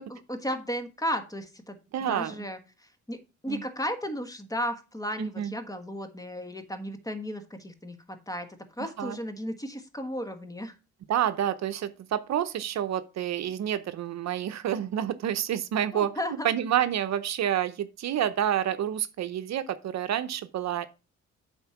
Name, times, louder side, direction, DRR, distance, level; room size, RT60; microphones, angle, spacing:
voice 1, 0.0-1.8 2.1-8.5 8.8-10.7 15.9-16.5, equal, 10° left, 1.4 m, -34 dB
voice 2, 1.9-2.3 3.5-3.6 5.2-5.5 9.0-9.2 11.1-20.9, right 10 dB, 65° right, 0.7 m, -29 dB
7.9 x 4.3 x 5.8 m
cardioid pair, 90°, 30 cm